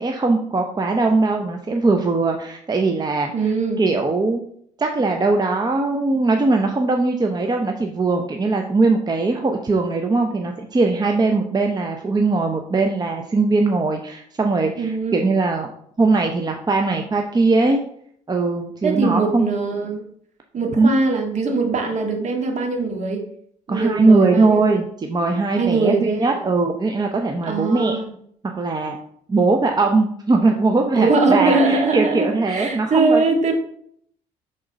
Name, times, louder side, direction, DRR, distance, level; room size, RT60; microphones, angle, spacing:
voice 1, 0.0-3.3 3.8-4.4 4.8-15.7 16.0-17.8 18.3-19.5 20.8-20.9 23.7-28.0 28.5-29.0 29.3-33.5, right 3 dB, 25° right, 3 dB, 0.8 m, -20 dB
voice 2, 3.3-3.8 14.8-15.2 18.8-20.0 20.5-23.2 23.7-24.8 25.6-26.4 27.5-28.1 30.9-33.5, right 3 dB, 50° right, 3 dB, 1.7 m, -21 dB
5.8 x 3.9 x 5.1 m, 0.65 s
supercardioid pair, 70°, 15 cm